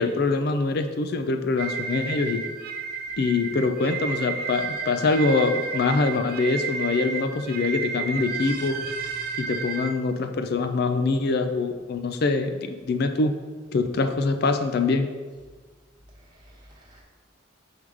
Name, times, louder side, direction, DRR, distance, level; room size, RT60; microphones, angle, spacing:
voice 1, 0.0-2.4 3.2-8.8 9.4-13.3 13.7-15.1, left 3 dB, 50° left, 8 dB, 0.4 m, -24 dB
sound 1, 1.6-9.9, right 5 dB, 50° right, 0.4 m, -32 dB
voice 2, 16.1-17.0, equal, 20° right, -5 dB, 1.1 m, -52 dB
6.2 x 3.6 x 4.8 m, 1.4 s
head